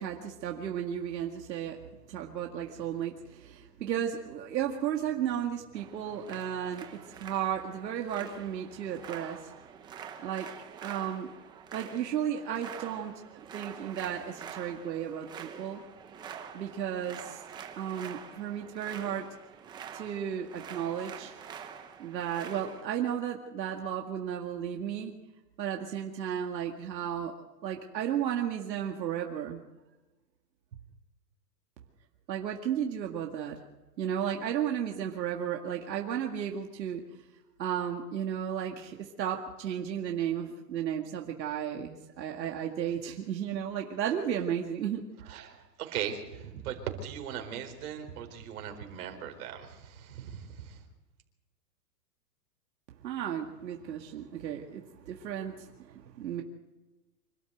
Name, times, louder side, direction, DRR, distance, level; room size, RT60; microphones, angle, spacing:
voice 1, 0.0-1.8 2.1-9.5 10.2-10.5 10.8-11.3 11.7-13.1 13.5-15.8 16.5-17.4 17.8-19.3 19.9-21.3 22.0-25.1 25.6-27.3 27.6-29.6 32.3-33.6 34.0-37.0 37.6-45.0 53.0-56.4, right 9 dB, 90° right, 2 dB, 2.2 m, -34 dB
sound 1, 5.7-22.8, right 7 dB, 10° right, 0.7 m, -46 dB
voice 2, 45.3-50.8, right 8 dB, 60° right, 5 dB, 4.4 m, -39 dB
25.5 x 13.0 x 8.0 m, 1.1 s
supercardioid pair, 165°, 49 cm